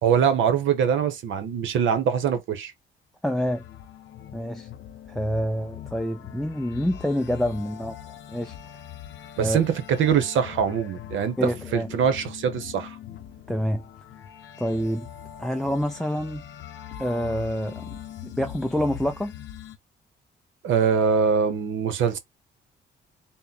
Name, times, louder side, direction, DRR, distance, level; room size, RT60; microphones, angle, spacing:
voice 1, 0.0-2.7 9.4-13.0 20.6-22.2, right 7 dB, 75° right, 1.0 m, -23 dB
voice 2, 3.2-3.6 4.3-4.7 5.1-8.0 8.3-8.6 9.4-9.6 11.4-11.9 13.5-13.8 14.6-15.1 15.4-16.4 17.0-19.3, equal, ahead, 0.3 m, -27 dB
sound 1, 3.3-19.8, left 11 dB, 70° left, 0.7 m, -42 dB
3.7 x 2.2 x 4.0 m
cardioid pair, 90°, 20 cm